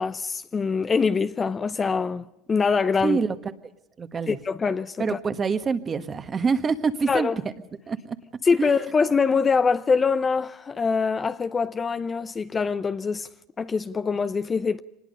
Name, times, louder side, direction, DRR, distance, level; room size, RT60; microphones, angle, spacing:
voice 1, 0.0-3.2 4.3-5.2 7.1-7.4 8.4-13.3 13.6-14.8, left 5 dB, 25° left, 0.7 m, -24 dB
voice 2, 3.0-3.4 4.0-4.4 5.0-7.3 7.9-8.2 8.6-8.7, right 5 dB, 30° right, 1.5 m, -26 dB
25.0 x 20.5 x 5.5 m
supercardioid pair, 105°, 0 cm